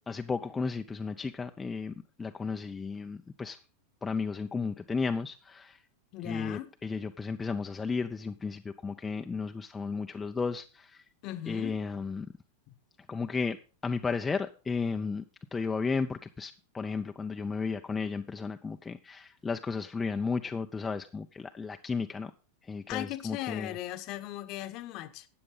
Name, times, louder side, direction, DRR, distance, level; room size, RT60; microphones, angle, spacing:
voice 1, 0.1-3.6 4.0-5.8 6.2-11.0 11.5-12.3 13.1-13.6 13.8-15.2 15.5-22.3 22.7-23.8, left 4 dB, 15° left, 0.5 m, -34 dB
voice 2, 6.1-6.7 11.2-11.8 22.9-25.3, left 14 dB, 40° left, 1.0 m, -38 dB
12.5 x 8.6 x 3.8 m
figure-of-eight pair, 90°, 0 cm